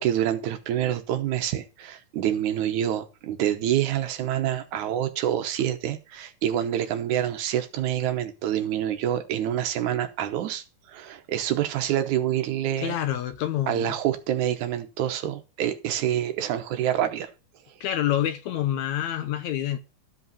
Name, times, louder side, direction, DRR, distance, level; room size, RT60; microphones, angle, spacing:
voice 1, 0.0-12.9 13.7-17.3, right 11 dB, 70° right, 2.2 m, -27 dB
voice 2, 12.8-14.0 17.8-19.8, left 11 dB, 75° left, 1.9 m, -27 dB
13.5 x 5.4 x 5.5 m
omnidirectional pair, 3.8 m